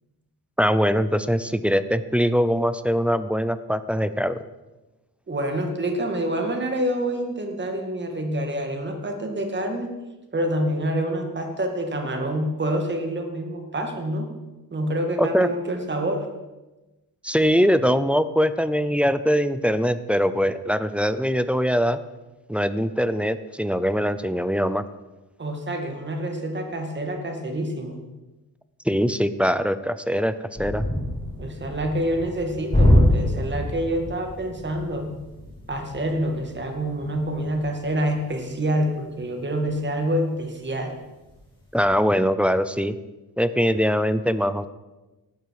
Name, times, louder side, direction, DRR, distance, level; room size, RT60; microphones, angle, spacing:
voice 1, 0.6-4.4 15.2-15.5 17.2-22.0 22.5-24.8 28.9-30.8 41.7-43.0 43.4-44.7, equal, 5° right, 12 dB, 0.5 m, -22 dB
voice 2, 5.3-9.9 10.3-14.3 14.7-16.3 25.4-28.0 31.4-35.1 35.7-40.9, right 1 dB, 30° right, 3 dB, 2.3 m, -27 dB
sound 1, 30.5-40.3 40.6-40.8 41.2-41.9, left 1 dB, 15° left, 4.2 m, -26 dB
18.5 x 12.0 x 4.9 m, 1.1 s
wide cardioid pair, 165°, 38 cm